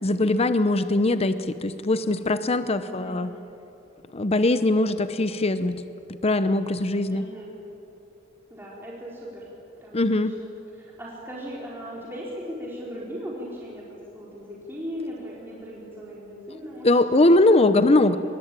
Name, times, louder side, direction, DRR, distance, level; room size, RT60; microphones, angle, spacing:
voice 1, 0.0-3.3 4.1-5.8 6.2-7.2 9.9-10.3 16.8-18.2, left 2 dB, 30° left, 11 dB, 0.8 m, -21 dB
voice 2, 2.8-3.2 7.1-7.5 8.5-9.5 9.8-10.5 10.7-13.9 14.1-16.9 17.2-18.1, equal, 10° right, -6 dB, 4.2 m, -38 dB
24.5 x 22.0 x 9.0 m, 2.9 s
head